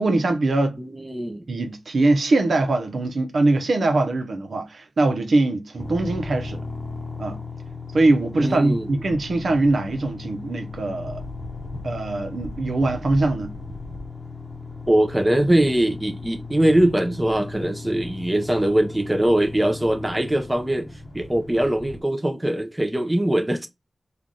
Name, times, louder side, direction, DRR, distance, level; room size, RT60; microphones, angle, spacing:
voice 1, 0.0-0.8 1.5-6.6 7.2-7.4 7.9-11.2 11.8-13.5, right 2 dB, 75° right, 0.8 m, -22 dB
voice 2, 0.8-1.5 8.4-8.9 14.9-23.7, right 1 dB, 15° right, 0.6 m, -22 dB
sound 1, 5.8-22.0, left 3 dB, 25° left, 0.9 m, -36 dB
3.2 x 2.4 x 3.9 m
wide cardioid pair, 75°, 0 cm